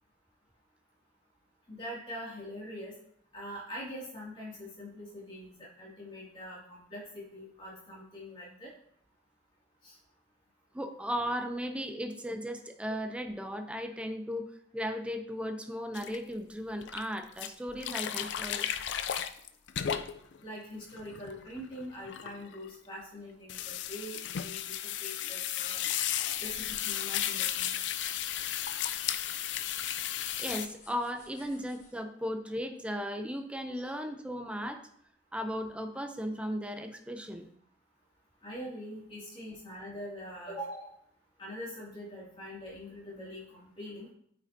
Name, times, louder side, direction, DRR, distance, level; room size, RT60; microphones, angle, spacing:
voice 1, 1.7-3.0 3.3-8.7 9.8-10.0 20.4-25.9 26.4-27.8 33.7-33.9 38.4-40.9 41.4-44.1, equal, 30° left, -5 dB, 2.3 m, -43 dB
voice 2, 10.7-18.7 30.4-34.9 35.3-37.5, equal, 5° right, 7 dB, 0.5 m, -36 dB
sound 1, 15.9-16.2 16.8-17.0 17.4-20.4 20.8-22.7 23.5-30.7, left 10 dB, 70° left, 0.4 m, -34 dB
sound 2, 26.3-31.9, left 4 dB, 45° left, 1.1 m, -54 dB
8.7 x 5.0 x 2.7 m, 0.67 s
head